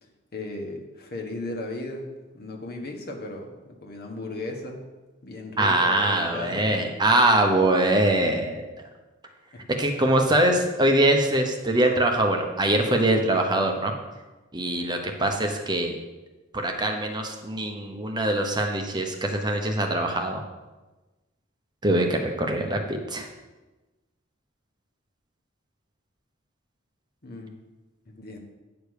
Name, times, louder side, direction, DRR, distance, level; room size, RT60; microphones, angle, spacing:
voice 1, 0.0-4.8 5.2-6.8 9.5-9.6 27.2-27.6 28.1-28.4, left 2 dB, 50° left, 1 dB, 1.4 m, -36 dB
voice 2, 5.6-8.6 9.8-13.9 14.5-16.0 16.5-20.4 21.8-23.3, right 1 dB, 20° right, 3 dB, 0.9 m, -23 dB
9.6 x 5.0 x 6.6 m, 1.1 s
head